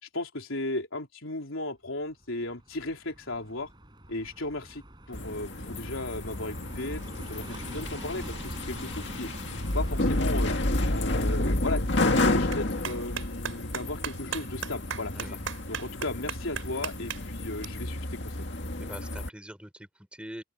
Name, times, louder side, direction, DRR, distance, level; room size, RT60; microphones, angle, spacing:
voice 1, 0.0-3.7 4.1-4.8 5.1-9.3 9.7-10.5 10.9-15.3 15.7-18.5, left 2 dB, 80° left, 3.9 m, -35 dB
Car passing by, 2.2-10.8, right 1 dB, 20° right, 5.2 m, -45 dB
sound 1, 5.1-19.3, left 1 dB, 60° left, 2.1 m, -30 dB
Clapping, 11.0-17.6, right 7 dB, 80° right, 4.9 m, -40 dB
voice 2, 18.8-20.4, equal, 5° right, 4.9 m, -43 dB
open air
head